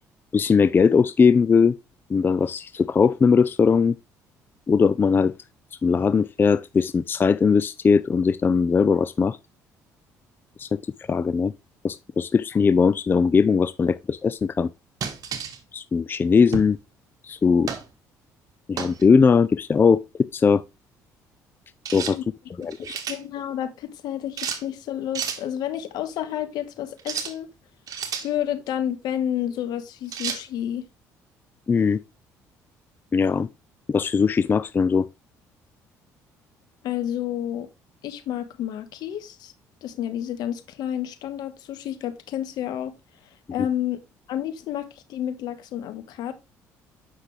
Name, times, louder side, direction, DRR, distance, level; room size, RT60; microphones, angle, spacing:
voice 1, 0.3-1.8 2.1-3.9 4.7-5.3 5.8-9.4 10.6-10.8 11.1-11.5 11.8-14.7 15.7-16.8 17.2-17.7 18.7-20.6 21.9-22.2 22.6-23.0 31.7-32.0 33.1-33.5 33.9-35.1, left 5 dB, 30° left, 0.4 m, -20 dB
sound 1, 15.0-15.6 16.5-16.8 17.7-17.9 18.8-19.0 21.8-22.2 22.6-23.2 24.4-24.6 25.1-25.4 27.0-27.4 27.9-28.3 30.1-30.4, right 7 dB, 55° right, 1.5 m, -31 dB
voice 2, 23.1-27.5 28.2-30.8 36.8-37.7 38.0-39.5 39.8-42.9 43.5-44.0 44.3-46.3, left 10 dB, 70° left, 1.2 m, -30 dB
7.9 x 5.7 x 3.3 m
supercardioid pair, 75°, 7 cm